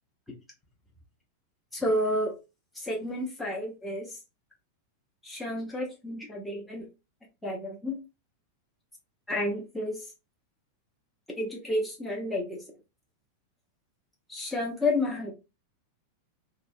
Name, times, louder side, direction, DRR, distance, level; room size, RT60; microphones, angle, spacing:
voice 1, 1.7-2.3 2.7-4.2 5.2-6.9 7.4-8.0 9.3-10.1 11.4-12.6 14.3-15.3, left 1 dB, 5° left, -2 dB, 0.7 m, -30 dB
3.5 x 2.0 x 2.4 m, 0.28 s
figure-of-eight pair, 90°, 0 cm